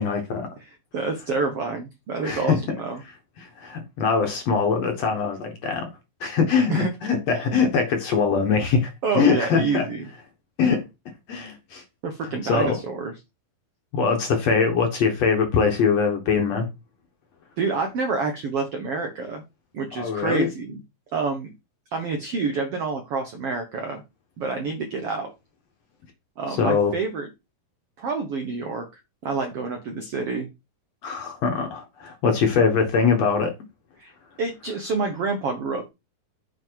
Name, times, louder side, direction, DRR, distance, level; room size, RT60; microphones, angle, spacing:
voice 1, 0.0-0.5 2.2-2.6 3.4-5.9 6.2-9.9 10.6-10.8 11.3-11.8 12.4-12.8 13.9-16.7 20.0-20.5 26.5-26.9 31.0-33.5, left 5 dB, 55° left, 2.0 m, -22 dB
voice 2, 0.6-3.0 6.7-6.9 9.0-10.0 12.0-13.1 17.6-19.4 19.7-20.8 21.1-21.5 21.9-24.0 24.4-25.3 26.4-27.3 28.0-30.5 34.0-34.1 34.4-35.9, right 4 dB, 70° right, 1.4 m, -28 dB
7.7 x 5.2 x 4.6 m
omnidirectional pair, 4.2 m